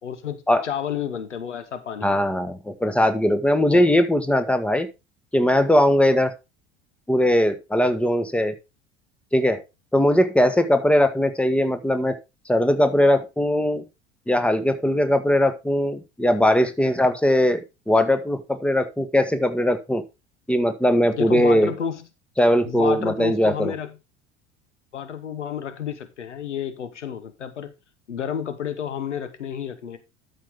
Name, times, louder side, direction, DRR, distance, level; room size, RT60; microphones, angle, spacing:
voice 1, 0.0-2.2 3.7-3.9 21.1-22.0 22.6-23.9 24.9-27.7 28.1-30.0, left 8 dB, 90° left, 1.2 m, -31 dB
voice 2, 2.0-4.9 5.3-6.3 7.1-8.5 9.3-9.6 9.9-12.2 12.5-13.8 14.3-20.0 20.5-21.7 22.4-23.7, left 1 dB, 5° left, 1.4 m, -20 dB
12.5 x 5.7 x 3.6 m
hypercardioid pair, 70°, 34 cm